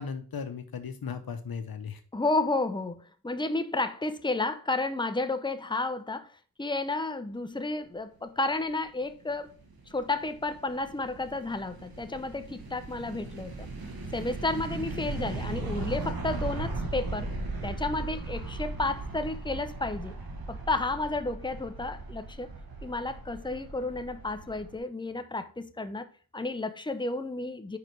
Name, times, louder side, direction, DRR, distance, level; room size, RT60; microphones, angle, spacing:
voice 1, 0.0-2.0, left 6 dB, 85° left, 0.8 m, -36 dB
voice 2, 2.1-6.3 6.6-9.5 9.9-13.7 14.1-17.3 17.6-20.2 20.5-22.5 22.8-26.1 26.3-27.8, left 2 dB, 15° left, 0.7 m, -32 dB
sound 1, 9.3-24.8, right 2 dB, 85° right, 1.3 m, -38 dB
5.1 x 4.9 x 4.6 m
cardioid pair, 40°, 35 cm